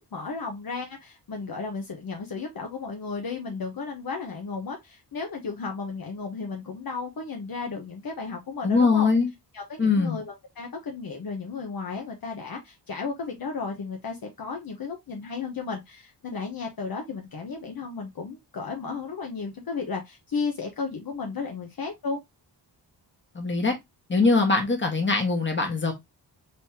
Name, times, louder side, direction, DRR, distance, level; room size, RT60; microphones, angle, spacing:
voice 1, 0.1-9.1 9.5-22.2, left 4 dB, 55° left, 1.0 m, -34 dB
voice 2, 8.6-9.3 9.8-10.2 23.3-23.8 24.1-25.9, left 4 dB, 25° left, 1.5 m, -22 dB
4.1 x 3.6 x 2.8 m
wide cardioid pair, 100°, 42 cm